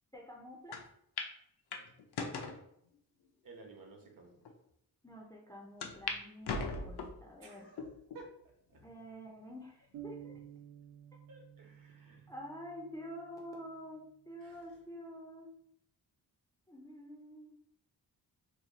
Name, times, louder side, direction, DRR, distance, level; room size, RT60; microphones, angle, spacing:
voice 1, 0.1-0.8 5.0-7.7 8.8-10.4 12.3-15.5 16.7-17.6, equal, 10° left, -1 dB, 0.4 m, -48 dB
sound 1, 0.7-0.8 1.2-1.3 1.7-2.6 3.3-3.4 4.1-4.2 4.4-4.5 5.8-6.2 6.4-7.2 7.8-8.2 8.8-8.9 10.0-10.4, left 4 dB, 80° left, 0.6 m, -39 dB
voice 2, 3.4-4.4 7.4-8.3 8.7-8.8 11.3-12.3 14.4-14.6, right 3 dB, 60° right, 1 dB, 0.9 m, -55 dB
sound 2, 9.9-13.7, right 11 dB, 75° right, 0.5 m, -52 dB
2.9 x 2.2 x 3.8 m, 0.73 s
wide cardioid pair, 175°, 39 cm